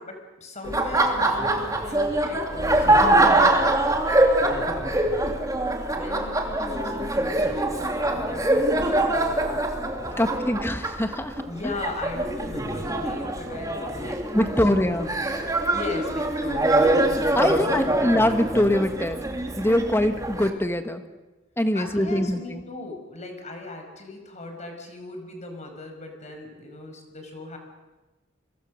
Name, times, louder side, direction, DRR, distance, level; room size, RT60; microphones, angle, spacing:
voice 1, 0.0-4.0 4.5-5.2 5.6-9.6 10.1-10.6 11.4-15.2 15.7-16.9 17.4-17.9 21.7-27.6, left 2 dB, 35° left, 4 dB, 5.4 m, -38 dB
Laughter, 0.6-20.5, right 1 dB, 20° right, 2.6 m, -24 dB
voice 2, 10.0-11.7 14.3-15.1 17.3-19.2 19.5-21.0 21.6-22.6, left 1 dB, 10° left, 8 dB, 1.5 m, -23 dB
30.0 x 23.5 x 6.5 m, 1.2 s
head